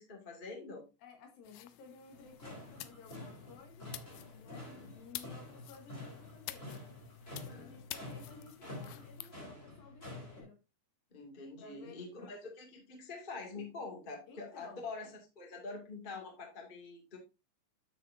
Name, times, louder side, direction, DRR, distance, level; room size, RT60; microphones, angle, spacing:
voice 1, 0.0-0.8 4.5-4.9 7.5-7.7 11.1-17.2, left 3 dB, 30° left, 0.8 m, -46 dB
voice 2, 1.0-3.9 4.4-6.8 7.3-10.6 11.6-12.4 14.3-14.9, left 5 dB, 65° left, 2.8 m, -56 dB
sound 1, 1.4-9.3, left 15 dB, 90° left, 3.0 m, -50 dB
sound 2, 2.1-10.4, left 2 dB, 15° left, 2.8 m, -48 dB
10.0 x 7.2 x 2.7 m
omnidirectional pair, 5.1 m